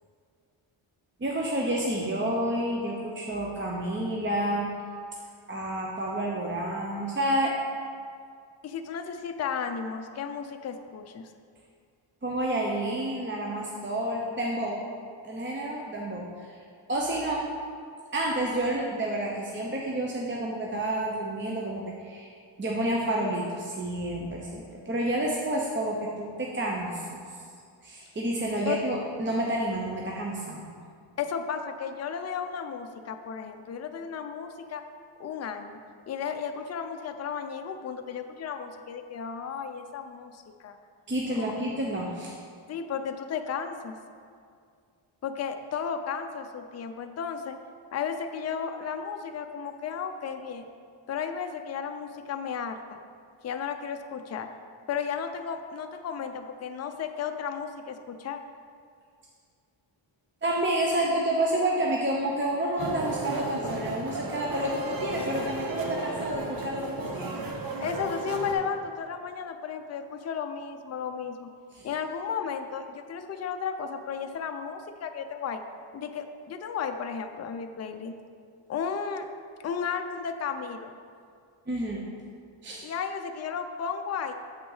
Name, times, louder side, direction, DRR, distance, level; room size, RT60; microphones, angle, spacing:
voice 1, 1.2-4.7 5.5-7.5 12.2-14.8 15.2-16.3 16.9-17.5 18.1-22.3 22.6-27.3 27.8-30.7 41.1-42.4 60.4-67.4 71.7-71.9 81.7-82.0 82.6-82.9, right 1 dB, 25° right, -2 dB, 0.6 m, -29 dB
voice 2, 8.6-11.3 28.6-28.8 31.2-34.8 35.2-35.8 36.1-40.8 42.7-43.9 45.2-47.6 47.9-50.7 51.1-53.0 53.4-54.5 54.9-58.4 67.8-71.5 71.8-75.6 75.9-78.1 78.7-79.3 79.6-80.9 82.8-84.3, left 6 dB, 35° left, 6 dB, 0.4 m, -34 dB
sound 1, 62.8-68.5, right 2 dB, 45° right, 0.9 m, -34 dB
7.4 x 5.7 x 3.9 m, 2.2 s
wide cardioid pair, 105°, 50 cm